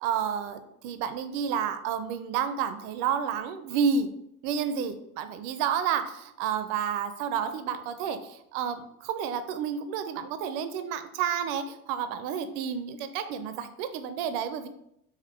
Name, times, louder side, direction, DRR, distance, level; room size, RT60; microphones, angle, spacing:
voice 1, 0.0-0.6 0.8-4.1 4.4-14.7, right 7 dB, 55° right, 10 dB, 0.5 m, -30 dB
3.6 x 3.2 x 3.3 m, 0.77 s
figure-of-eight pair, 65°, 44 cm